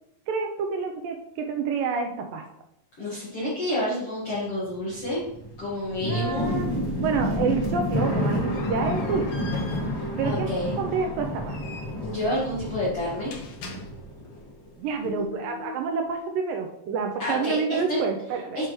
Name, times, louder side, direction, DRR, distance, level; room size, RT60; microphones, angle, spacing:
voice 1, 0.3-2.5 6.1-6.7 7.0-9.5 10.2-10.5 10.8-11.6 14.8-18.7, right 5 dB, 80° right, 4 dB, 2.1 m, -28 dB
voice 2, 3.0-5.2 5.6-6.5 10.2-10.7 12.0-13.3 17.2-18.0 18.5-18.7, left 1 dB, 50° left, -8 dB, 2.0 m, -29 dB
sound 1, 4.5-14.7 14.9-15.8, equal, 35° left, 1.1 m, -30 dB
sound 2, 7.8-14.4, left 3 dB, 80° left, 1.4 m, -46 dB
9.7 x 4.8 x 3.1 m, 0.78 s
omnidirectional pair, 4.5 m